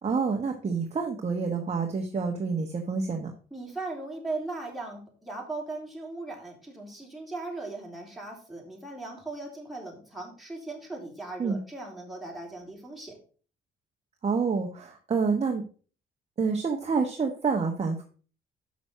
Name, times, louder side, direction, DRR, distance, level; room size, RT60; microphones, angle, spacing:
voice 1, 0.0-3.3 11.4-11.6 14.2-15.6 16.4-18.0, right 5 dB, 30° right, 2 dB, 1.1 m, -28 dB
voice 2, 3.5-13.2, right 2 dB, ahead, -2 dB, 3.5 m, -38 dB
6.3 x 5.8 x 5.5 m, 0.39 s
cardioid pair, 90°, 20 cm